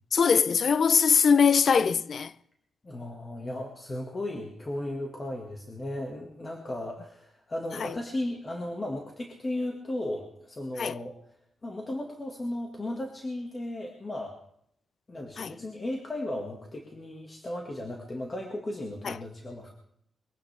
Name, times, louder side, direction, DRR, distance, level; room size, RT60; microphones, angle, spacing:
voice 1, 0.1-2.3 7.8-7.9 10.8-10.9 15.4-15.5 19.0-19.1, left 6 dB, 50° left, 0.5 m, -22 dB
voice 2, 2.8-11.2 11.6-14.4 15.1-19.7, left 1 dB, 25° left, 1.8 m, -35 dB
22.5 x 16.5 x 3.4 m
wide cardioid pair, 140°, 0 cm